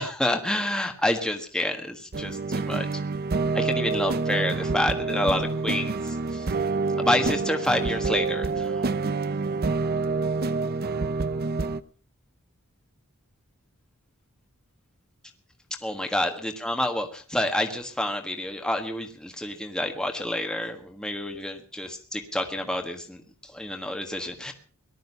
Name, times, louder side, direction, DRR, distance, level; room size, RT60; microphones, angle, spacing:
voice 1, 0.0-2.9 3.5-6.0 6.3-6.4 7.0-8.8 15.8-23.2 23.5-24.5, left 1 dB, 5° left, 3 dB, 1.5 m, -28 dB
sound 1, 2.1-11.8, right 3 dB, 45° right, 0.7 m, -27 dB
18.5 x 12.0 x 5.5 m, 0.39 s
head